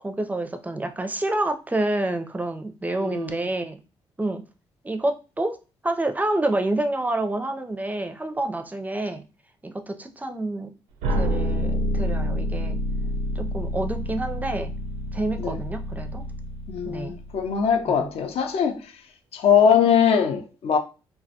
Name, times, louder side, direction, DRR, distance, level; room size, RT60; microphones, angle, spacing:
voice 1, 0.0-3.8 4.2-4.4 4.8-5.6 5.8-9.2 9.6-10.7 11.1-12.8 13.4-14.7 15.1-16.2 16.8-17.2 17.9-18.1, right 2 dB, 15° right, 0.4 m, -28 dB
voice 2, 3.0-3.4 15.4-15.6 16.7-18.8 19.3-20.8, left 7 dB, 60° left, 0.5 m, -21 dB
sound 1, 11.0-17.9, equal, 75° right, 0.4 m, -28 dB
2.2 x 2.1 x 2.7 m
hypercardioid pair, 45°, 12 cm